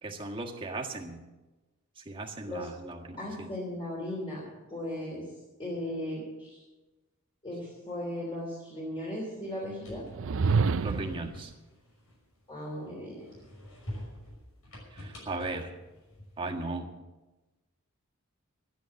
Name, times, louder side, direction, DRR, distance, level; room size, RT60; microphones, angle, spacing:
voice 1, 0.0-1.2 2.0-3.5 10.8-11.5 14.9-15.7 16.4-16.9, right 2 dB, 25° right, 0 dB, 1.6 m, -37 dB
voice 2, 3.2-4.4 4.7-5.2 5.6-6.6 7.4-10.0 12.5-13.3, left 1 dB, 25° left, -4 dB, 3.4 m, -37 dB
sound 1, 9.4-12.7 13.2-16.6, equal, 80° left, 5.8 m, -47 dB
sound 2, 10.1-11.3, right 4 dB, 65° right, 0.5 m, -27 dB
12.5 x 10.0 x 7.8 m, 1.1 s
head